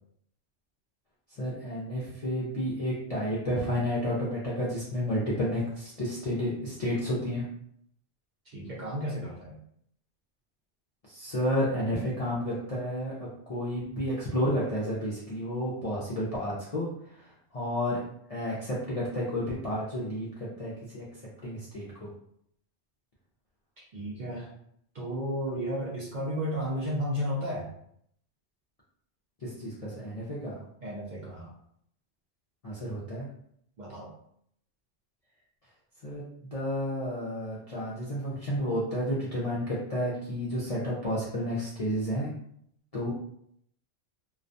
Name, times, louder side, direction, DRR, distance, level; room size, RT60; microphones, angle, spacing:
voice 1, 1.4-7.4 11.1-16.9 17.2-18.0 18.3-21.0 21.4-22.1 29.4-30.6 32.6-33.3 36.0-42.3 42.9-43.1, equal, 50° left, -7 dB, 0.4 m, -31 dB
voice 2, 8.5-9.6 23.9-24.5 24.9-27.7 30.8-31.5 33.8-34.1, equal, 55° right, -5 dB, 0.6 m, -33 dB
2.3 x 2.2 x 2.6 m, 0.70 s
omnidirectional pair, 1.2 m